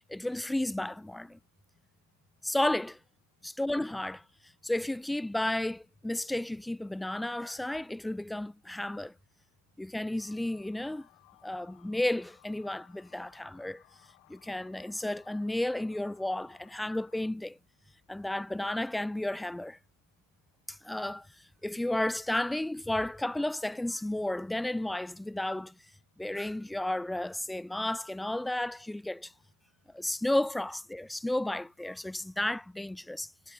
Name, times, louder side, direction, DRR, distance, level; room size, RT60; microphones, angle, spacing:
voice 1, 0.1-1.4 2.4-3.0 3.4-4.2 4.6-9.1 9.8-11.1 11.4-13.8 14.3-17.6 18.1-19.8 20.7-21.3 21.6-25.7 26.2-29.3 29.9-33.5, left 1 dB, 5° left, 0.6 m, -33 dB
sound 1, 10.2-17.3, left 31 dB, 45° left, 5.8 m, -62 dB
figure-of-eight pair, 100°, 0 cm